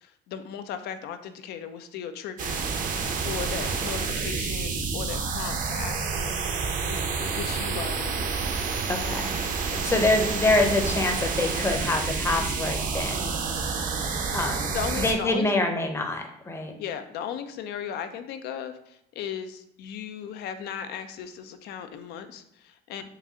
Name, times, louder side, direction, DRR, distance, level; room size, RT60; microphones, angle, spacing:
voice 1, 0.0-2.8 3.1-6.3 6.9-8.3 9.7-9.9 14.5-15.5 16.8-23.0, left 8 dB, 75° left, 10 dB, 0.4 m, -37 dB
sound 1, 2.4-15.1, right 5 dB, 50° right, 0.6 m, -29 dB
voice 2, 8.9-13.3 14.3-14.7 15.0-16.7, left 2 dB, 15° left, 4 dB, 0.6 m, -26 dB
4.7 x 2.4 x 2.8 m, 0.80 s
cardioid pair, 110°, 17 cm